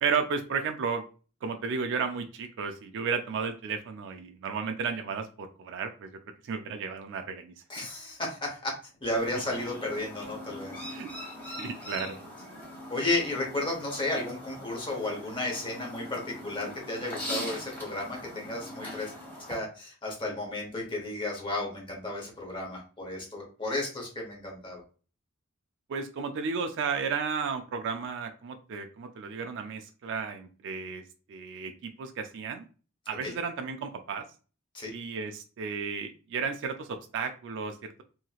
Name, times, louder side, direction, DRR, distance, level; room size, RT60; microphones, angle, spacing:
voice 1, 0.0-1.0 1.4-7.9 10.9-11.1 11.5-12.2 25.9-31.0 31.3-32.6 33.1-34.2 34.9-37.9, right 5 dB, 55° right, 6 dB, 0.3 m, -33 dB
voice 2, 7.7-8.7 9.0-10.7 12.9-19.1 19.5-24.8 33.2-33.3 34.7-34.9, left 2 dB, 25° left, -1 dB, 1.0 m, -33 dB
Chirp tweet, 9.2-19.6, left 1 dB, 10° left, 1.2 m, -41 dB
2.9 x 2.8 x 2.3 m, 0.37 s
head